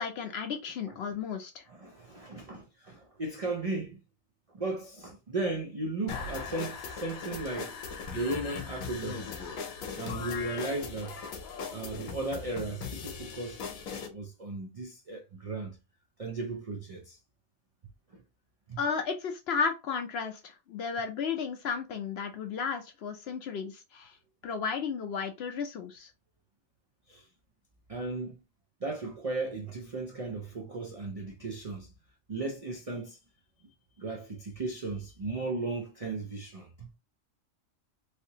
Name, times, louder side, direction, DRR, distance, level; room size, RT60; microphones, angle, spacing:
voice 1, 0.0-1.6 18.8-24.1 24.4-26.1, left 6 dB, 60° left, 0.7 m, -33 dB
voice 2, 1.7-4.0 4.5-7.7 8.1-9.3 10.0-11.2 11.7-13.6 14.1-15.8 16.2-17.2 18.1-18.2 18.7-18.8 27.1-27.3 27.9-28.4 28.8-31.9 32.3-33.2 34.0-36.9, right 2 dB, 65° right, 0.3 m, -36 dB
sound 1, 6.1-14.1, left 5 dB, 80° left, 1.2 m, -39 dB
3.3 x 2.8 x 2.7 m
omnidirectional pair, 1.4 m